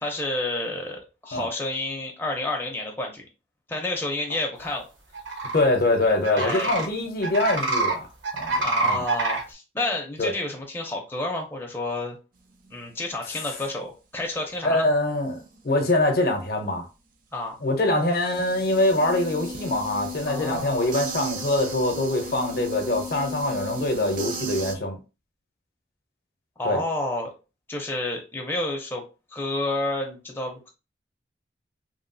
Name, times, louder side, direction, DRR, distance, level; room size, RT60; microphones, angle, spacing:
voice 1, 0.0-3.3 3.7-4.9 6.0-6.7 8.6-12.2 12.7-14.9 17.3-17.6 20.3-20.9 26.6-27.3 27.7-29.0 29.3-30.7, left 2 dB, 10° left, 0.5 m, -30 dB
sound 1, 5.1-5.6 6.2-6.9 7.2-7.9 8.2-9.4, right 3 dB, 80° right, 0.8 m, -25 dB
voice 2, 5.5-8.1 8.3-9.0 10.2-10.3 14.6-16.9 17.6-25.0 26.6-26.8, left 2 dB, 50° left, 0.7 m, -24 dB
sound 2, 18.1-24.7, right 1 dB, 45° right, 0.4 m, -35 dB
3.1 x 2.3 x 2.6 m
head